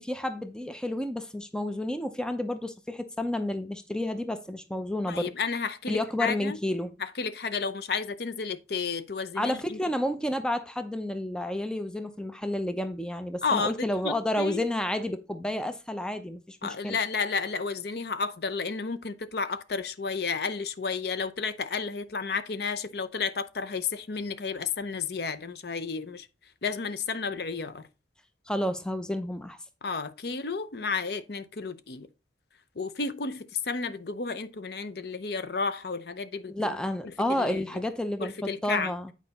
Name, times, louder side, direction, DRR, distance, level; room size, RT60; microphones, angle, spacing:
voice 1, 0.0-5.3 5.9-6.9 9.4-17.0 28.5-29.6 36.5-39.1, left 1 dB, 5° left, 0.5 m, -30 dB
voice 2, 5.1-6.6 7.0-9.8 13.4-14.6 16.6-26.3 26.6-27.8 29.8-32.1 32.8-36.7 37.3-37.6 38.2-38.9, left 5 dB, 60° left, 0.6 m, -32 dB
8.9 x 4.7 x 4.0 m
head